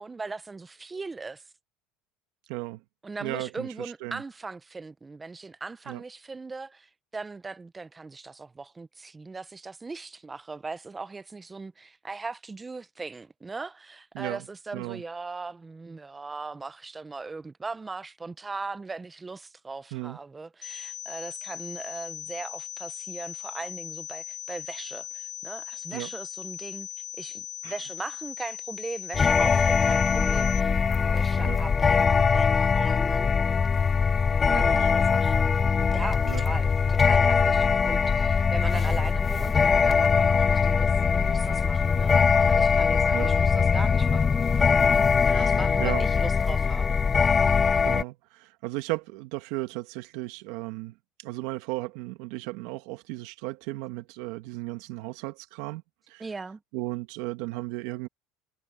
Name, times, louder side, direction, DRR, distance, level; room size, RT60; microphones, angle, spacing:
voice 1, 0.0-1.4 3.0-26.9 27.2-30.9 31.1-33.4 34.5-35.5 35.9-44.3 45.2-47.0 56.2-56.6, right 3 dB, 15° right, 0.9 m, -39 dB
voice 2, 2.5-2.8 3.2-4.2 5.9-6.0 14.1-14.4 14.7-15.0 19.9-20.2 25.9-26.1 27.6-27.7 31.4-31.6 34.5-34.9 36.2-36.4 43.1-43.3 45.3-45.5 45.8-46.1 47.8-50.9 51.2-56.2 56.7-58.1, right 20 dB, 75° right, 1.8 m, -35 dB
sound 1, 20.6-30.6, left 11 dB, 40° left, 0.8 m, -39 dB
sound 2, 29.1-48.0, left 5 dB, 25° left, 0.4 m, -22 dB
supercardioid pair, 125°, 0 cm